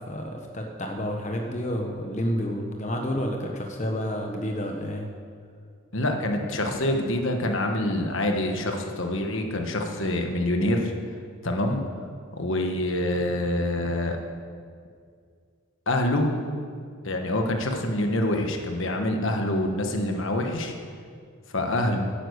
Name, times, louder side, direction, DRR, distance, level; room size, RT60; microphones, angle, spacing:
voice 1, 0.1-5.1, equal, 35° left, 2 dB, 1.2 m, -30 dB
voice 2, 5.9-10.9 11.4-11.8 12.3-14.2 15.9-16.3 17.0-20.7 21.5-22.0, left 1 dB, 60° left, 3 dB, 1.4 m, -26 dB
11.5 x 10.0 x 8.2 m, 2.2 s
head